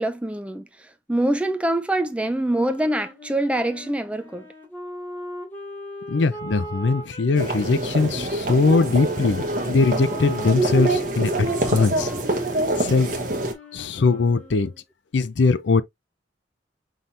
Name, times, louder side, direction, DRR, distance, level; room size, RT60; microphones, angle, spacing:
voice 1, 0.0-4.5, right 1 dB, 5° right, 0.4 m, -25 dB
Wind instrument woodwind instrument, 2.4-8.3 9.0-14.8, right 1 dB, 10° left, 2.0 m, -39 dB
voice 2, 6.1-12.1 12.8-13.2 13.7-14.7 15.1-15.8, left 3 dB, 80° left, 0.5 m, -21 dB
sound 1, 7.3-13.5, right 2 dB, 45° right, 1.1 m, -25 dB
5.7 x 3.3 x 2.6 m
head